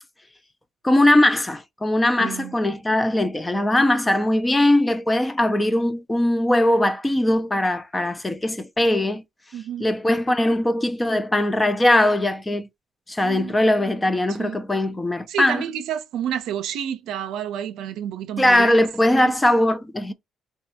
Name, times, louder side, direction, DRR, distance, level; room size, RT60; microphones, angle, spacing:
voice 1, 0.8-9.2 9.8-12.7 13.1-15.6 18.4-20.1, left 1 dB, 15° left, 0.4 m, -20 dB
voice 2, 2.2-2.6 9.5-9.9 13.2-13.5 14.4-14.6 15.3-18.8 19.1-19.3, right 10 dB, 85° right, 0.5 m, -30 dB
3.2 x 2.2 x 2.8 m
cardioid pair, 125°, 0 cm